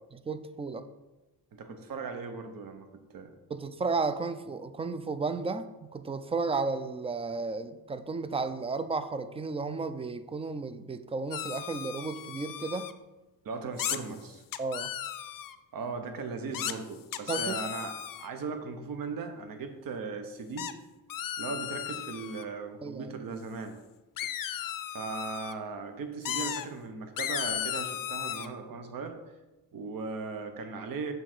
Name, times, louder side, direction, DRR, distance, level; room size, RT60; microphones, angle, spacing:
voice 1, 0.3-0.9 3.5-12.9 14.6-14.9 17.3-17.6 22.8-23.1, right 4 dB, 15° right, 11 dB, 0.3 m, -33 dB
voice 2, 1.5-3.3 13.4-14.4 15.7-20.7 21.4-23.8 24.9-29.2 29.7-31.1, right 4 dB, 55° right, 6 dB, 0.9 m, -38 dB
sound 1, 11.3-12.9 13.8-14.0 14.5-15.5 16.5-16.7 17.1-18.3 20.6-20.7 21.1-22.4 24.2-25.5 26.2-26.6 27.2-28.5, left 11 dB, 55° left, 0.5 m, -35 dB
7.0 x 3.8 x 6.0 m, 1.1 s
cardioid pair, 110°, 40 cm